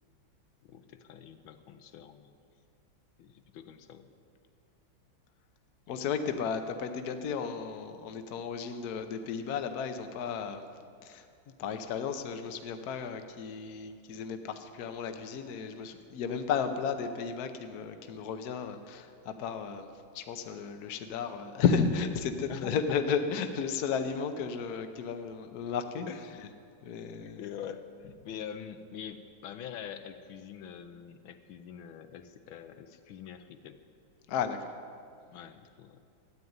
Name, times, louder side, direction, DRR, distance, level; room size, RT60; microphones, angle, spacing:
voice 1, 0.6-2.3 3.2-4.1 22.5-22.8 26.1-26.5 26.8-33.8 35.3-36.0, left 8 dB, 85° left, 8 dB, 1.5 m, -45 dB
voice 2, 5.9-10.6 11.0-11.3 11.6-26.1 26.8-27.4 34.3-34.7, left 6 dB, 60° left, 8 dB, 1.3 m, -33 dB
13.5 x 9.2 x 9.5 m, 2.3 s
omnidirectional pair, 2.2 m